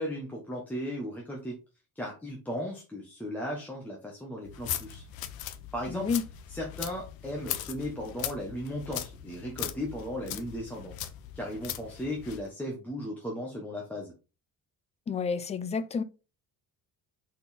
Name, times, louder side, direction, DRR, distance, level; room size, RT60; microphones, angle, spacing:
voice 1, 0.0-1.6 2.0-5.0 5.7-6.1 6.5-10.9 11.4-14.1, equal, 5° left, 1.1 m, -36 dB
sound 1, 4.4-12.5, left 11 dB, 80° left, 0.8 m, -39 dB
voice 2, 5.9-6.2 15.1-16.0, left 5 dB, 20° left, 0.3 m, -30 dB
5.3 x 4.3 x 4.1 m
cardioid pair, 170°, 35 cm